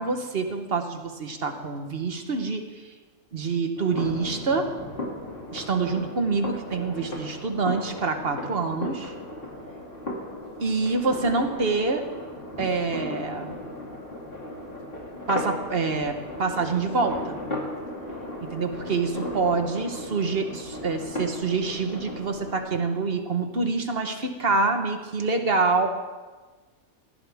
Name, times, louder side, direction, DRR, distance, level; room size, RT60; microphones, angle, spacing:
voice 1, 0.0-2.8 3.3-4.7 5.5-9.1 10.6-12.0 12.6-13.6 15.3-17.4 18.4-25.9, right 4 dB, 45° right, 5 dB, 1.4 m, -26 dB
sound 1, 3.8-22.6, left 1 dB, 40° left, 2.8 m, -36 dB
18.5 x 15.5 x 3.6 m, 1.3 s
omnidirectional pair, 1.5 m